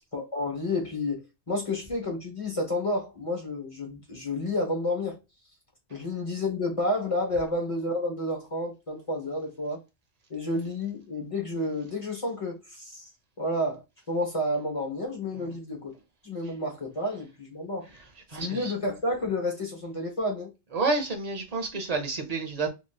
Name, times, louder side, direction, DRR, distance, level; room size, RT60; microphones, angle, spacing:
voice 1, 0.1-5.2 5.9-9.8 10.3-13.1 13.4-15.9 16.2-17.9 18.3-20.5, left 1 dB, 30° left, 1.0 m, -30 dB
voice 2, 18.3-18.7 20.7-22.7, right 3 dB, 40° right, 0.7 m, -29 dB
3.0 x 2.8 x 2.3 m
omnidirectional pair, 1.1 m